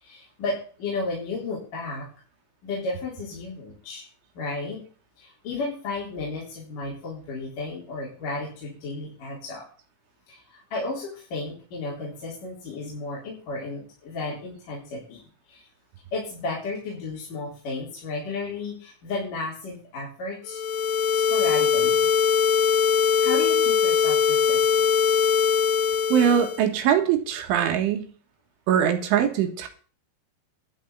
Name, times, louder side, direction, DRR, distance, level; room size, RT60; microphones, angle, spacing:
voice 1, 0.0-2.1 2.6-4.1 4.3-4.8 5.2-9.7 10.3-15.7 16.1-20.6 21.1-22.1 22.8-25.2, left 3 dB, 45° left, -5 dB, 5.0 m, -33 dB
sound 1, 20.5-26.6, left 6 dB, 65° left, 3.4 m, -21 dB
voice 2, 26.1-28.1 28.7-29.7, right 9 dB, 75° right, 5 dB, 4.0 m, -22 dB
12.5 x 6.5 x 8.2 m, 0.40 s
omnidirectional pair, 5.9 m